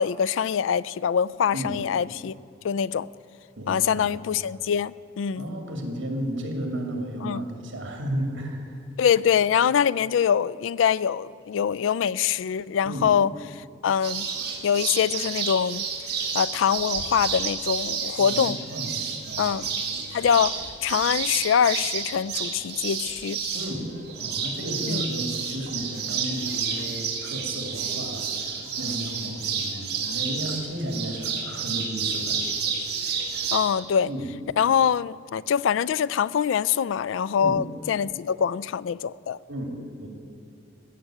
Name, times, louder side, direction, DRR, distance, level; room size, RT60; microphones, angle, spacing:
voice 1, 0.0-2.4 2.6-3.1 3.7-5.6 7.2-7.4 9.0-14.3 14.6-15.9 16.3-18.6 19.4-19.7 20.1-23.4 24.9-25.0 33.5-34.1 34.6-39.4, left 8 dB, 80° left, 0.3 m, -24 dB
voice 2, 3.6-4.1 5.3-8.7 12.8-13.1 18.2-19.6 23.5-23.9 24.2-32.4 34.1-34.3 37.4-37.6 39.5-39.7 40.0-40.1, right 1 dB, 80° right, 2.6 m, -33 dB
sound 1, 14.0-33.6, right 6 dB, 55° right, 2.2 m, -30 dB
15.5 x 7.3 x 9.1 m
head